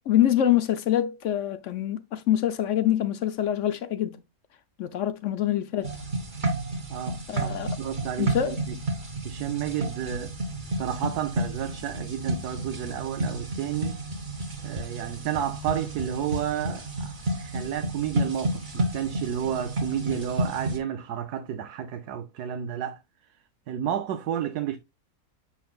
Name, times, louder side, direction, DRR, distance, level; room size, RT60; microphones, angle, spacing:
voice 1, 0.1-4.2 4.8-5.9 7.3-7.8 8.2-8.6, left 11 dB, 60° left, 0.9 m, -25 dB
sound 1, 5.8-20.8, right 2 dB, 35° right, 1.4 m, -31 dB
voice 2, 6.9-8.8 9.2-10.3 10.7-14.0 14.6-23.0 23.7-24.8, right 9 dB, 80° right, 1.3 m, -31 dB
7.2 x 5.7 x 2.3 m
omnidirectional pair, 1.7 m